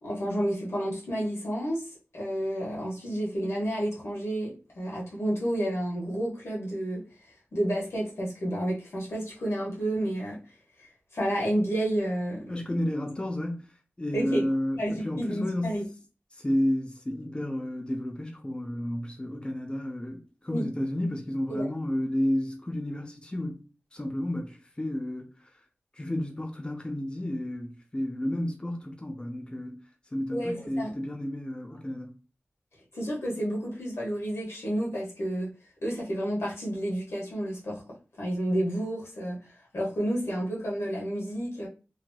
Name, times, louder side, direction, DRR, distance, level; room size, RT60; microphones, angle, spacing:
voice 1, 0.0-1.9 2.1-7.0 7.5-10.4 11.1-12.5 14.1-14.4 14.7-15.8 20.5-20.7 21.5-21.7 30.3-30.9 32.9-35.5 35.8-37.8 38.2-39.4 39.7-41.7, right 1 dB, 90° left, 1.3 m, -30 dB
voice 2, 12.5-13.7 14.0-15.8 16.3-23.6 23.9-25.3 25.9-29.8 30.1-32.2, left 1 dB, 25° left, 0.6 m, -31 dB
3.1 x 2.8 x 2.3 m
wide cardioid pair, 60°, 4 cm